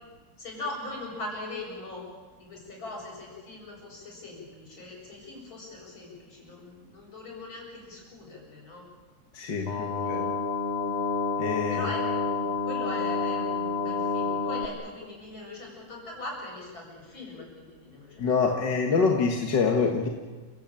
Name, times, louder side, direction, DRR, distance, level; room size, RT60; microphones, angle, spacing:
voice 1, 0.4-2.0 2.4-8.8 9.6-10.3 11.7-18.2, left 2 dB, 85° left, -1 dB, 8.4 m, -41 dB
voice 2, 9.3-10.3 11.4-11.9 18.2-20.1, left 5 dB, 65° left, 2 dB, 2.3 m, -26 dB
sound 1, 9.7-14.7, left 4 dB, 35° left, 1.8 m, -29 dB
29.5 x 16.5 x 9.0 m, 1.4 s
omnidirectional pair, 2.1 m